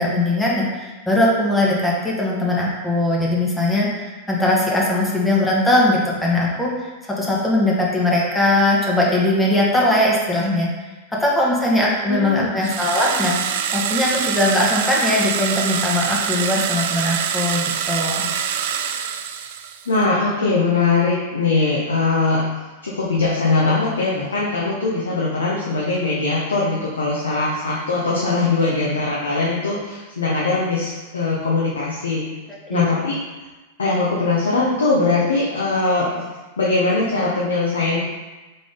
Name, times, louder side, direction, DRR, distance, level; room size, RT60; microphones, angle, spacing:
voice 1, 0.0-10.7 11.1-18.3 32.7-32.8, left 1 dB, 10° left, -4 dB, 1.1 m, -20 dB
voice 2, 12.1-12.5 19.9-22.4 22.8-32.3 32.7-33.2 33.8-36.2 36.6-38.0, left 3 dB, 75° left, -4 dB, 0.7 m, -21 dB
sound 1, 12.6-19.9, right 8 dB, 60° right, 0.3 m, -25 dB
3.9 x 3.6 x 3.7 m, 1.2 s
figure-of-eight pair, 95°, 0 cm